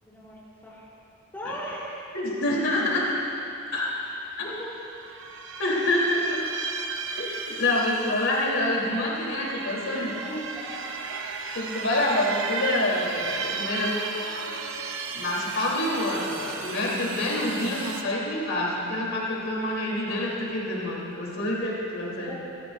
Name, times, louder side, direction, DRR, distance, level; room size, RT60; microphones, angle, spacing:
voice 1, 0.0-0.9 1.3-2.0 4.5-4.7 10.0-10.8 22.2-22.3, equal, 10° left, -8 dB, 3.8 m, -38 dB
voice 2, 2.1-3.2 3.7-3.9 4.4-4.5 5.6-6.4 7.2-10.1 11.5-14.0 15.1-22.3, left 1 dB, 75° left, -4 dB, 3.5 m, -27 dB
sound 1, 4.2-4.3 4.7-18.0, right 5 dB, 65° right, 1.0 m, -35 dB
29.0 x 15.0 x 2.6 m, 2.8 s
head